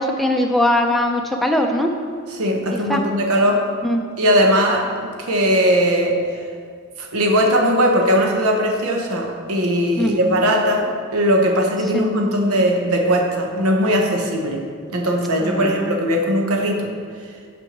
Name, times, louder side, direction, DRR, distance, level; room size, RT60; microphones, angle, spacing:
voice 1, 0.0-1.9 2.9-3.0 3.8-4.0 10.0-10.2 11.9-12.0 15.4-16.0, left 1 dB, ahead, 2 dB, 0.5 m, -20 dB
voice 2, 2.4-3.6 4.2-6.2 7.0-14.6 14.9-16.9, equal, 85° right, 1 dB, 1.0 m, -19 dB
6.0 x 4.5 x 6.5 m, 2.1 s
head